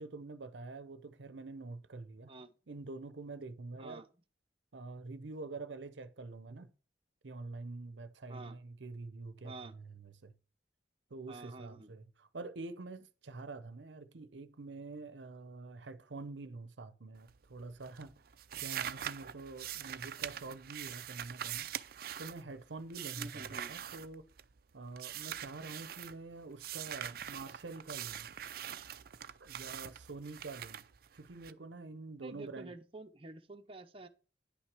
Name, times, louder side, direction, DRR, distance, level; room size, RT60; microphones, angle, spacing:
voice 1, 0.0-2.3 2.7-4.0 4.7-6.7 7.2-10.3 11.1-18.1 18.6-21.7 22.2-24.3 24.7-28.3 29.4-30.8 31.1-32.7, right 3 dB, 85° right, 0.7 m, -46 dB
voice 2, 9.4-9.8 11.3-11.9 23.2-23.8 32.2-34.1, right 2 dB, 30° right, 0.9 m, -49 dB
sound 1, 17.1-17.6 17.8-24.6 25.0-26.1 26.6-31.5, right 10 dB, 55° right, 0.5 m, -43 dB
10.0 x 6.0 x 4.7 m
head